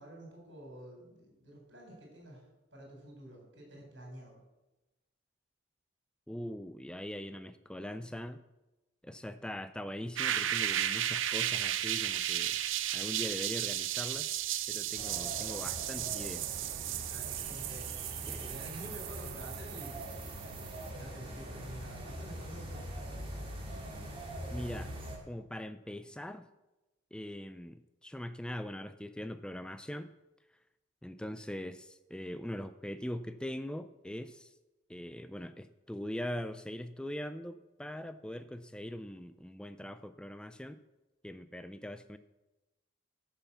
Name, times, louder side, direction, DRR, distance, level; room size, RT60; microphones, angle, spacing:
voice 1, 0.0-2.4 2.7-4.4 17.1-17.9 18.2-20.5 20.9-22.9, right 1 dB, 65° right, -1 dB, 4.3 m, -49 dB
voice 2, 6.3-8.4 9.0-12.6 12.9-14.3 14.7-16.4 18.3-18.5 24.5-24.9 25.3-26.5 27.1-30.1 31.0-34.5 34.9-40.8 41.2-42.2, left 1 dB, 5° left, 11 dB, 0.3 m, -41 dB
sound 1, 10.2-20.9, right 11 dB, 80° right, 0.6 m, -35 dB
sound 2, 14.9-25.2, right 1 dB, 30° right, 2.0 m, -43 dB
12.5 x 5.7 x 7.0 m, 1.0 s
head